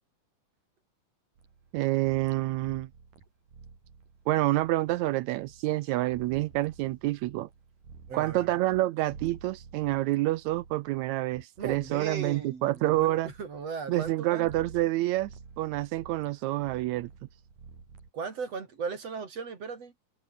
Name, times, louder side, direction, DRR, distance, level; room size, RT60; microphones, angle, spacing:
sound 1, 1.4-8.8 9.1-14.1 14.4-14.9 15.2-18.1, right 5 dB, 65° right, 6.8 m, -51 dB
voice 1, 1.7-2.9 4.3-7.5 8.1-13.3 13.9-15.3 15.6-17.1, right 17 dB, 85° right, 1.6 m, -28 dB
voice 2, 8.1-8.5 11.6-14.5 18.1-19.9, right 5 dB, 45° right, 3.8 m, -37 dB
omnidirectional pair, 4.0 m